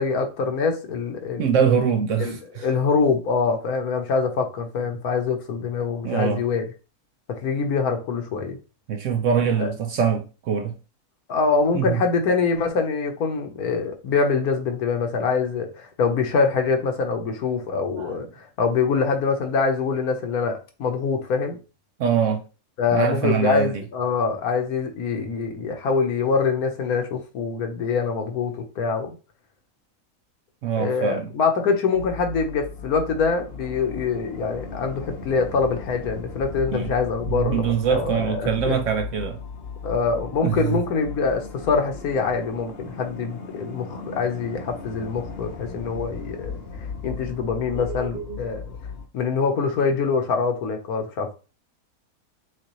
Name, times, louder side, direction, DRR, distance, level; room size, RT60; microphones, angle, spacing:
voice 1, 0.0-1.5 2.2-6.6 7.3-8.6 9.6-9.7 11.3-21.6 22.8-29.1 30.8-38.7 39.8-48.6 49.1-51.3, left 5 dB, 70° left, 1.4 m, -24 dB
voice 2, 1.4-2.7 6.0-6.4 8.9-10.7 11.7-12.0 18.0-18.2 22.0-22.4 22.9-23.7 30.6-31.3 36.7-36.9 37.3-39.4 40.4-40.8 47.0-47.1 47.7-48.4, right 7 dB, 65° right, 0.8 m, -23 dB
sound 1, 31.9-49.1, left 5 dB, 50° left, 0.8 m, -37 dB
6.3 x 2.4 x 3.0 m
omnidirectional pair, 1.6 m